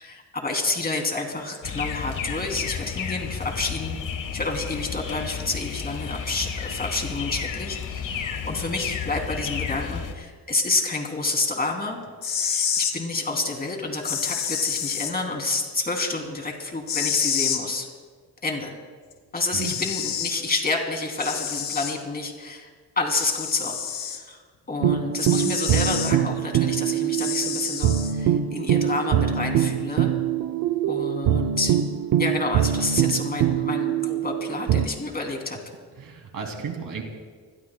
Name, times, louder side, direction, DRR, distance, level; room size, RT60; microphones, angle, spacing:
voice 1, 0.0-4.0 4.3-12.0 12.4-17.9 18.4-18.7 19.3-22.7 23.0-24.4 24.7-30.1 30.9-31.8 32.2-35.6, left 3 dB, 25° left, 2 dB, 2.9 m, -29 dB
sound 1, 1.6-10.1, left 7 dB, 60° left, 1.4 m, -32 dB
sound 2, 12.1-13.0 14.0-15.1 16.9-17.6 19.1-19.2 19.6-20.4 21.2-22.0 23.1-24.2 25.2-26.1 27.2-28.1, left 7 dB, 80° left, 2.0 m, -28 dB
sound 3, 24.8-34.9, right 9 dB, 90° right, 0.7 m, -23 dB
voice 2, 36.0-37.0, right 5 dB, 70° right, 3 dB, 2.5 m, -33 dB
27.5 x 20.5 x 2.2 m, 1.5 s
wide cardioid pair, 130°, 35 cm